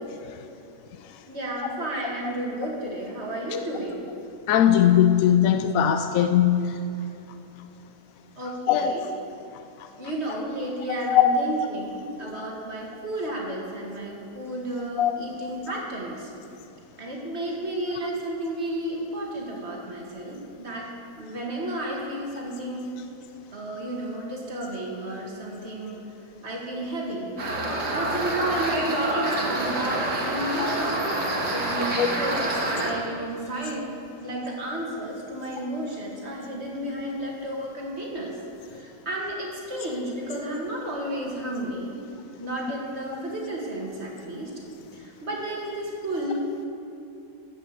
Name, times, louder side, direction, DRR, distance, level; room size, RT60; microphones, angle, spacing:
voice 1, 1.3-4.1 8.4-9.0 10.0-16.3 17.0-20.9 21.2-22.9 23.5-26.1 26.4-27.3 27.9-31.2 31.5-33.9 34.2-38.4 38.6-42.0 42.4-44.5 44.9-46.7, right 1 dB, 40° right, -2 dB, 2.3 m, -32 dB
voice 2, 4.5-6.7 8.7-8.9 11.1-11.2 15.0-15.1 30.6-30.7 32.0-32.1, left 10 dB, 70° left, 7 dB, 0.8 m, -19 dB
sound 1, 27.4-32.9, right 1 dB, 70° right, 2.3 m, -27 dB
14.0 x 6.1 x 8.2 m, 2.8 s
omnidirectional pair, 1.8 m